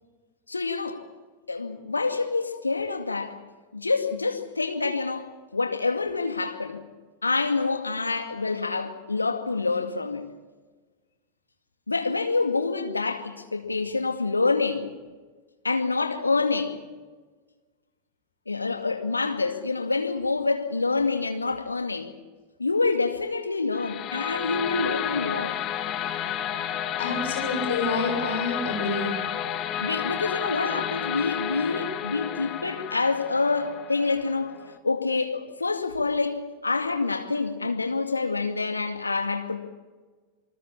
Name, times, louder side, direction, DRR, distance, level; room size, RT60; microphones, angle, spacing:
voice 1, 0.5-1.0 1.5-3.4 3.7-6.8 7.2-10.3 11.9-14.9 15.6-16.8 18.5-22.2 22.6-25.6 29.8-34.5 34.8-39.6, left 3 dB, 80° left, 2.2 m, -27 dB
sound 1, 23.7-34.8, left 10 dB, 35° left, 1.8 m, -31 dB
voice 2, 27.0-29.2, left 3 dB, 60° left, 7.2 m, -28 dB
27.5 x 20.0 x 7.2 m
figure-of-eight pair, 90°, 0 cm